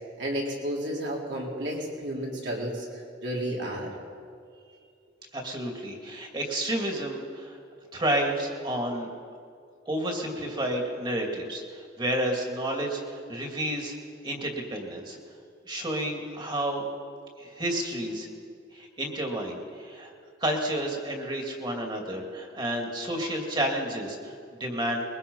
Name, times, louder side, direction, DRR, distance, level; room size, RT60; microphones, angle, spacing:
voice 1, 0.2-2.9 3.2-3.9, equal, 65° right, -2 dB, 4.2 m, -32 dB
voice 2, 5.3-7.6 7.9-9.1 9.9-13.9 14.2-15.2 15.7-16.9 17.4-18.3 18.7-20.1 20.4-25.0, right 1 dB, 25° right, 2 dB, 2.7 m, -30 dB
22.0 x 21.5 x 5.6 m, 2.4 s
head